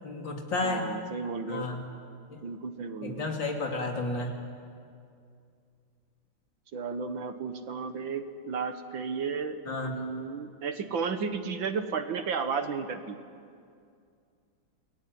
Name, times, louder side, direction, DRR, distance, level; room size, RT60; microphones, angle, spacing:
voice 1, 0.0-0.8 1.5-1.8 2.3-2.4 3.0-4.4 9.7-10.0, left 3 dB, 65° left, 1 dB, 3.7 m, -32 dB
voice 2, 0.6-1.7 2.4-3.3 6.7-13.2, right 5 dB, 70° right, 8 dB, 2.2 m, -33 dB
29.0 x 20.0 x 9.6 m, 2.3 s
omnidirectional pair, 2.2 m